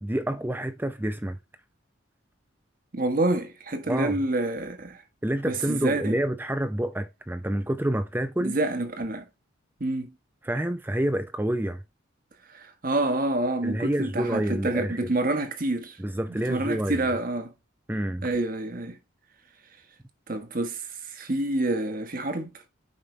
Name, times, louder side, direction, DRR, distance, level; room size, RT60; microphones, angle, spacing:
voice 1, 0.0-1.4 3.9-4.2 5.2-8.6 10.4-11.8 13.6-15.0 16.0-17.0 17.9-18.3, right 1 dB, 10° right, 0.6 m, -28 dB
voice 2, 2.9-5.0 5.4-6.2 8.4-9.3 9.8-10.1 12.5-16.0 16.3-17.5 18.2-19.0 20.3-22.5, right 2 dB, 45° right, 1.4 m, -28 dB
8.7 x 5.7 x 3.2 m
head